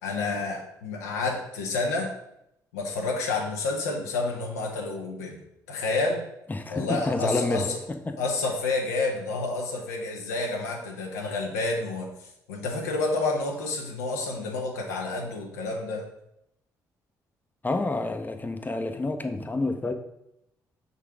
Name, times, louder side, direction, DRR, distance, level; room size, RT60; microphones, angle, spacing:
voice 1, 0.0-2.1 2.7-5.4 5.7-6.2 6.7-7.8 8.2-16.0, left 3 dB, 90° left, 0 dB, 0.9 m, -29 dB
voice 2, 6.5-8.2 17.6-19.9, left 2 dB, 20° left, 6 dB, 0.8 m, -29 dB
5.5 x 4.0 x 4.8 m, 0.81 s
hypercardioid pair, 45°, 8 cm